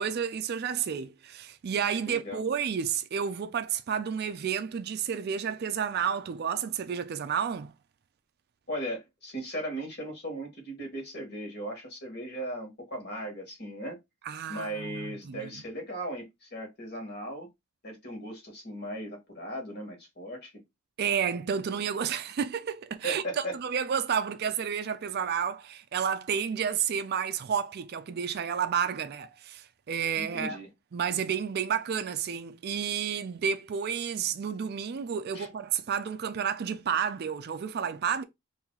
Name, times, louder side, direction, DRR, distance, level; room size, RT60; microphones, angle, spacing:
voice 1, 0.0-7.7 14.3-15.6 21.0-30.6 30.9-38.2, right 7 dB, 45° right, 0.3 m, -31 dB
voice 2, 2.1-2.4 8.7-14.0 14.5-17.5 17.8-20.5 23.0-23.6 30.2-30.7 35.3-35.5, right 1 dB, 45° left, 1.5 m, -37 dB
2.9 x 2.7 x 3.8 m
head